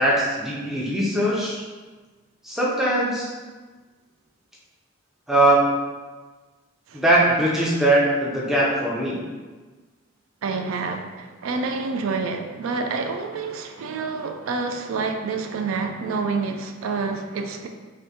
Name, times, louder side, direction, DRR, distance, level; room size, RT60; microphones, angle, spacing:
voice 1, 0.0-1.6 2.4-3.3 5.3-5.8 6.9-9.2, right 1 dB, ahead, -6 dB, 0.5 m, -21 dB
voice 2, 10.4-17.7, right 4 dB, 85° right, 5 dB, 0.3 m, -28 dB
3.4 x 2.6 x 2.8 m, 1.3 s
head